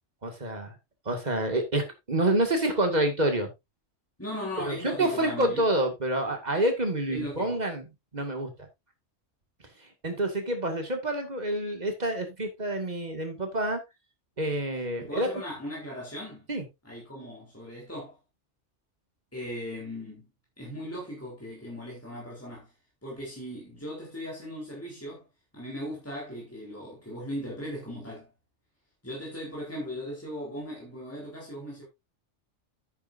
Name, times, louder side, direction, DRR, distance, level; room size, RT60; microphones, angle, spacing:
voice 1, 0.2-0.8 1.1-3.5 4.6-7.8 8.1-8.5 10.0-13.8 14.4-15.3 16.5-16.6, right 1 dB, 35° right, 2.3 m, -28 dB
voice 2, 4.2-5.7 7.1-7.6 15.0-16.5 16.8-18.2 19.3-20.3 20.6-22.7 23.0-25.3 25.5-28.3 29.0-31.8, equal, 10° left, 4.2 m, -38 dB
10.0 x 9.4 x 2.7 m
omnidirectional pair, 1.3 m